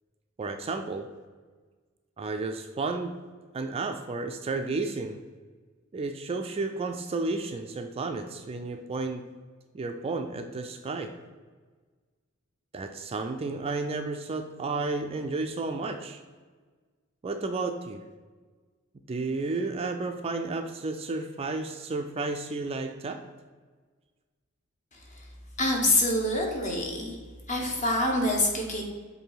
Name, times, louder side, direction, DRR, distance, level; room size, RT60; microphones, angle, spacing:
voice 1, 0.4-1.1 2.2-3.2 3.5-5.2 5.9-9.2 9.7-11.1 12.7-16.2 17.2-18.0 19.1-23.2, right 3 dB, 30° right, 6 dB, 0.3 m, -32 dB
voice 2, 25.6-27.2 27.5-28.8, left 1 dB, 35° left, 0 dB, 1.2 m, -26 dB
7.4 x 2.7 x 4.8 m, 1.4 s
head